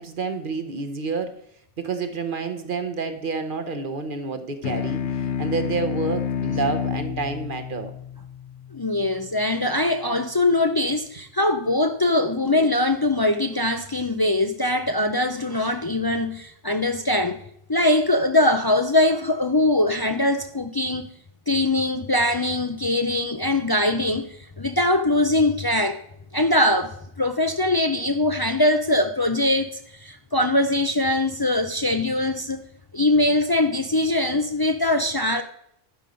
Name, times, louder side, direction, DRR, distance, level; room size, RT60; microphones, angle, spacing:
voice 1, 0.0-1.4 1.8-7.9, right 4 dB, 45° right, 1.0 m, -29 dB
sound 1, 4.6-9.5, left 8 dB, 70° left, 0.9 m, -29 dB
voice 2, 8.7-17.4 17.7-21.1 21.5-26.0 26.3-32.6 32.9-35.4, left 1 dB, 35° left, 0.3 m, -22 dB
11.5 x 5.5 x 5.0 m
omnidirectional pair, 1.3 m